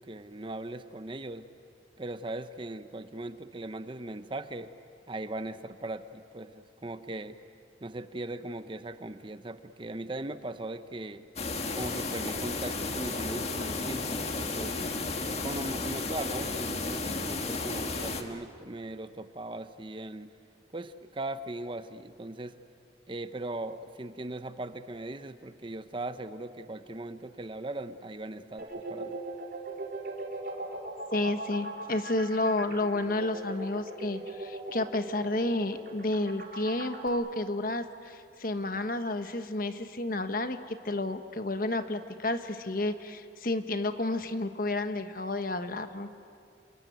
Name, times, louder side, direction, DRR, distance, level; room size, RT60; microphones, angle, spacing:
voice 1, 0.0-1.5 2.0-4.7 5.1-7.4 7.8-11.2 11.8-14.8 15.3-20.3 20.7-22.6 23.1-29.2, right 2 dB, 30° right, 11 dB, 0.8 m, -39 dB
sound 1, 11.4-18.2, left 3 dB, 35° left, 1.7 m, -33 dB
sound 2, 28.6-37.1, right 1 dB, 55° right, 3.6 m, -39 dB
voice 2, 31.1-46.1, left 2 dB, 50° left, 9 dB, 1.3 m, -31 dB
28.0 x 23.0 x 9.3 m, 2.5 s
head